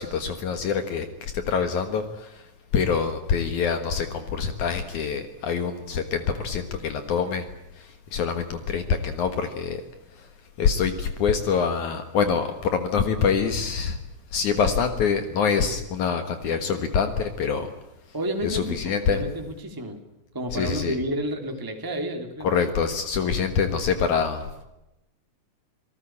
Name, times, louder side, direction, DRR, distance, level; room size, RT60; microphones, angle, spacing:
voice 1, 0.0-2.5 2.7-7.5 7.7-9.8 10.2-10.3 10.6-14.0 14.3-17.7 18.4-19.2 20.5-20.9 22.4-24.6, left 6 dB, 65° left, 8 dB, 2.8 m, -25 dB
voice 2, 18.1-20.0 20.3-22.5, right 1 dB, 5° right, 4 dB, 2.3 m, -30 dB
28.0 x 19.0 x 8.7 m, 0.92 s
omnidirectional pair, 3.8 m